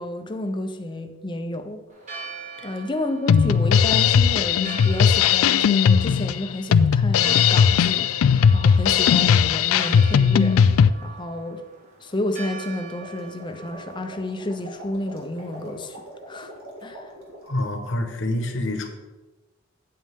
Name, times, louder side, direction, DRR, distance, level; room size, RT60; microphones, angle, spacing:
voice 1, 0.0-1.8 2.6-11.6 12.0-16.0 16.3-16.5 16.8-17.1, left 1 dB, 20° left, 6 dB, 0.7 m, -31 dB
Church bell, 1.9-16.0, right 5 dB, 35° right, 1.7 m, -42 dB
Drum kit, 3.3-10.9, left 7 dB, 80° left, 0.3 m, -18 dB
sound 1, 12.9-17.7, right 1 dB, 85° right, 2.1 m, -42 dB
voice 2, 17.5-18.9, left 1 dB, 60° left, 5 dB, 1.2 m, -26 dB
8.8 x 8.3 x 3.6 m, 1.1 s
head